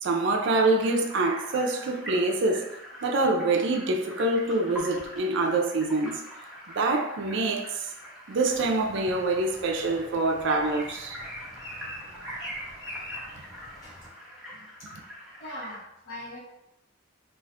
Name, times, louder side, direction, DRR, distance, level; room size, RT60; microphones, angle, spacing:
voice 1, 0.0-2.7 3.0-6.2 6.7-7.9 8.3-11.2, right 2 dB, 60° right, 0.4 m, -25 dB
sound 1, 0.7-15.8, equal, ahead, 0.6 m, -44 dB
sound 2, 8.5-14.1, equal, 20° left, 1.2 m, -42 dB
voice 2, 15.4-16.4, left 1 dB, 65° left, 0.9 m, -40 dB
2.5 x 2.3 x 3.4 m
head